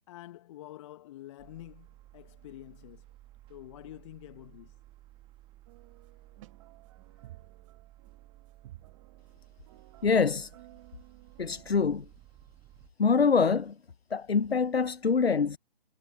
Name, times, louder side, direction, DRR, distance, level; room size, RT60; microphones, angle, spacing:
voice 1, 0.1-3.0 3.5-4.8 7.1-7.3, left 14 dB, 30° left, 1.2 m, -48 dB
sound 1, 1.4-12.9, right 15 dB, 15° right, 1.8 m, -56 dB
sound 2, 5.7-12.0, right 15 dB, 30° right, 1.9 m, -55 dB
voice 2, 10.0-10.5 11.4-12.1 13.0-13.8 14.1-15.6, left 5 dB, 85° left, 0.9 m, -25 dB
figure-of-eight pair, 135°, 30 cm